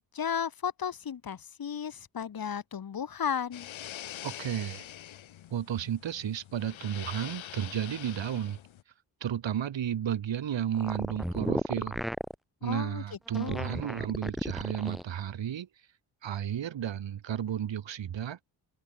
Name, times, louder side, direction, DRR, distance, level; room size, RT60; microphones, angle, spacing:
voice 1, 0.1-3.7 12.6-13.0 13.4-13.8, left 7 dB, 50° left, 2.5 m, -34 dB
sound 1, 3.5-8.8, left 12 dB, 85° left, 3.2 m, -44 dB
voice 2, 4.2-4.8 5.5-8.6 9.2-12.0 12.6-15.7 16.2-18.4, right 9 dB, 70° right, 7.7 m, -33 dB
sound 2, 10.7-12.3 13.3-15.1, equal, ahead, 6.6 m, -33 dB
cardioid pair, 110°, 46 cm